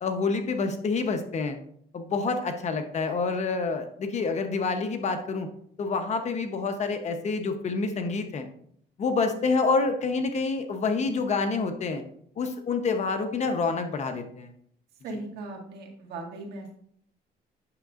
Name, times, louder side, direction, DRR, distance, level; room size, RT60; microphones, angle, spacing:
voice 1, 0.0-1.6 1.9-5.5 5.8-8.5 9.0-12.0 12.4-14.5, left 4 dB, 40° left, 6 dB, 0.9 m, -27 dB
voice 2, 15.0-16.7, right 2 dB, 75° right, 1 dB, 1.8 m, -38 dB
8.8 x 6.6 x 2.5 m, 0.66 s
cardioid pair, 110°, 17 cm